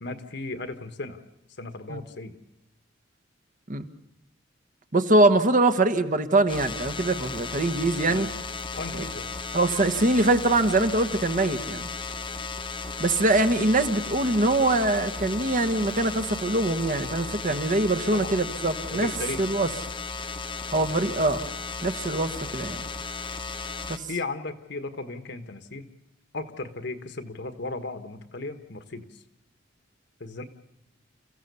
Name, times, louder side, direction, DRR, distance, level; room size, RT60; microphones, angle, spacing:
voice 1, 0.0-1.2 1.6-2.4 8.0-8.3 8.7-9.3 18.1-18.3 18.9-19.4 20.8-20.9 24.1-25.9 26.3-29.2 30.2-30.4, left 3 dB, 60° left, 9 dB, 1.5 m, -36 dB
voice 2, 4.9-8.3 9.0-9.1 9.5-11.9 13.0-19.1 19.4-19.7 20.7-21.4 21.8-22.8 23.9-24.0, right 2 dB, 45° right, 8 dB, 1.3 m, -23 dB
sound 1, 6.5-24.0, left 4 dB, 25° left, 1.1 m, -35 dB
29.0 x 15.5 x 6.9 m, 0.88 s
head